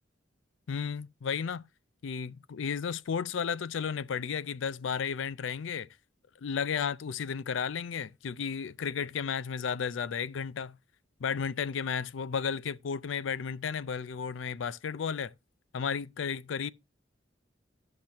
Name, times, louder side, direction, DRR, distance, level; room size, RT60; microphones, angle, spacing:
voice 1, 0.7-1.6 2.0-5.9 6.4-10.8 11.2-15.3 15.7-16.7, left 6 dB, 80° left, 0.4 m, -33 dB
13.0 x 5.9 x 2.9 m
head